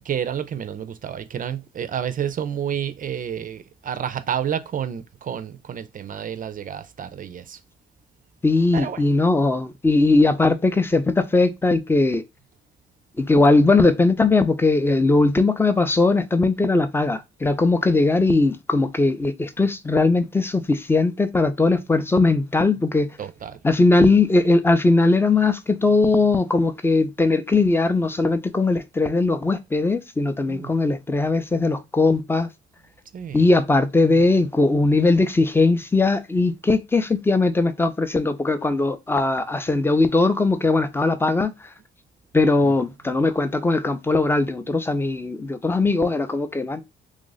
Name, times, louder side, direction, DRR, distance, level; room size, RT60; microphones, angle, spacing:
voice 1, 0.0-7.6 8.7-9.0 23.2-23.6 30.5-30.7 33.1-33.5 42.6-42.7, right 8 dB, 45° right, 0.4 m, -30 dB
voice 2, 8.4-12.2 13.2-23.1 23.6-32.5 33.3-41.5 42.3-46.8, left 3 dB, 10° left, 0.5 m, -19 dB
3.1 x 2.4 x 3.9 m
cardioid pair, 90°, 20 cm